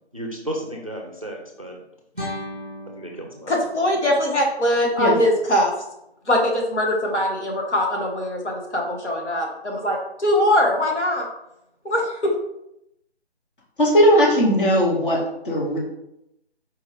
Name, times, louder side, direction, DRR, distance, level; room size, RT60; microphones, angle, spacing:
voice 1, 0.1-1.8 3.0-3.6, right 1 dB, 35° right, 0 dB, 0.4 m, -33 dB
sound 1, 2.1-5.2, left 1 dB, 10° left, 0.9 m, -37 dB
voice 2, 3.5-5.7 6.3-11.3 11.8-12.3, left 1 dB, 85° left, -1 dB, 1.5 m, -22 dB
voice 3, 13.8-15.8, equal, 50° left, -3 dB, 1.6 m, -18 dB
4.4 x 3.2 x 3.3 m, 0.83 s
figure-of-eight pair, 165°, 34 cm